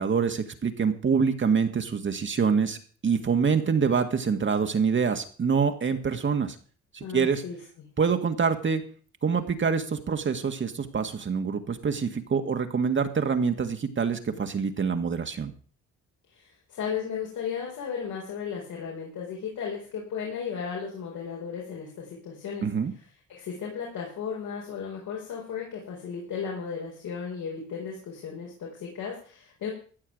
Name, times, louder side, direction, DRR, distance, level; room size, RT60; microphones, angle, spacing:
voice 1, 0.0-2.8 3.0-6.6 6.9-7.4 8.0-8.8 9.2-15.5 22.6-22.9, right 6 dB, 40° right, 6 dB, 1.8 m, -25 dB
voice 2, 7.0-7.6 16.3-22.7 23.3-29.7, left 6 dB, 75° left, -2 dB, 4.8 m, -35 dB
15.5 x 5.6 x 9.2 m, 0.42 s
cardioid pair, 90°, 30 cm